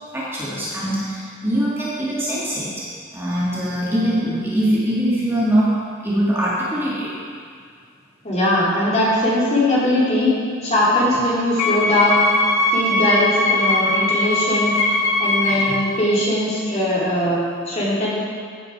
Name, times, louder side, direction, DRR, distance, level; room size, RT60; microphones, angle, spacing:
voice 1, 0.1-2.8 3.1-5.8 6.0-7.1 15.5-15.7, right 1 dB, 10° right, -8 dB, 2.0 m, -22 dB
voice 2, 8.2-10.3 10.6-12.2 12.7-14.8 15.2-17.4 17.7-18.1, left 1 dB, 30° left, -7 dB, 3.3 m, -20 dB
Wind instrument woodwind instrument, 11.6-15.9, left 2 dB, 70° left, 1.8 m, -20 dB
15.5 x 9.0 x 4.7 m, 2.1 s
head